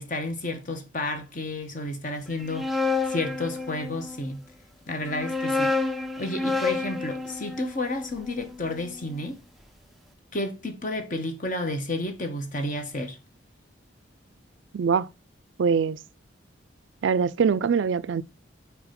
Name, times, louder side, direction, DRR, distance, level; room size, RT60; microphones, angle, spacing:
voice 1, 0.0-4.4 4.9-5.8 6.2-9.4 10.3-13.2, left 2 dB, 40° left, 1.1 m, -31 dB
sound 1, 2.3-4.2 5.0-9.1, left 3 dB, ahead, 0.4 m, -29 dB
voice 2, 14.7-15.1 15.6-16.0 17.0-18.2, right 6 dB, 70° right, 0.4 m, -23 dB
4.8 x 4.6 x 5.1 m
head